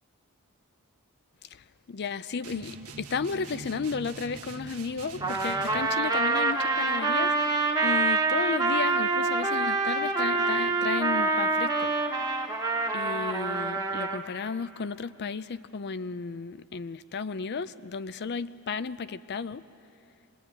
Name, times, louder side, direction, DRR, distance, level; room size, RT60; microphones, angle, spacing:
voice 1, 1.5-12.3 12.9-19.6, left 5 dB, 50° left, 14 dB, 0.5 m, -34 dB
sound 1, 2.4-5.9, right 2 dB, 75° right, 1.5 m, -43 dB
Trumpet, 5.2-14.2, right 3 dB, 20° right, 1.4 m, -26 dB
24.5 x 20.0 x 8.9 m, 2.7 s
head